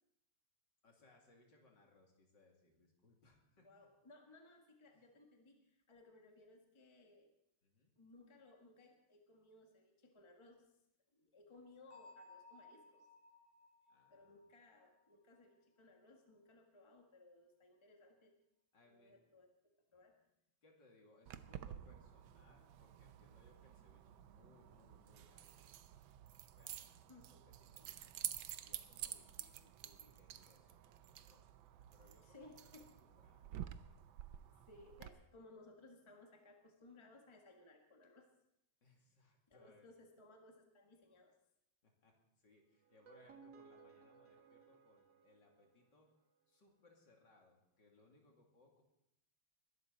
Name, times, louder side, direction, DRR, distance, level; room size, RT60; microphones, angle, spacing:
voice 1, 0.8-3.7 4.9-5.0 7.6-7.9 13.9-14.4 18.7-19.2 20.6-25.7 26.5-28.2 28.6-31.4 31.9-34.0 38.8-39.9 41.8-46.1 46.5-48.8, left 2 dB, 60° left, 0 dB, 3.3 m, -69 dB
voice 2, 3.6-7.3 8.0-10.7 11.1-13.1 14.1-18.4 18.9-20.2 27.1-27.5 32.2-32.9 34.7-38.3 39.5-41.4, left 2 dB, 15° left, 2 dB, 1.5 m, -62 dB
Bell, 11.9-15.6, left 3 dB, 15° right, 3.1 m, -62 dB
Keys jangling, 21.3-35.1, right 11 dB, 75° right, 1.5 m, -51 dB
sound 1, 42.8-46.0, right 5 dB, 60° right, 2.4 m, -62 dB
21.0 x 12.0 x 4.0 m, 0.80 s
omnidirectional pair, 2.2 m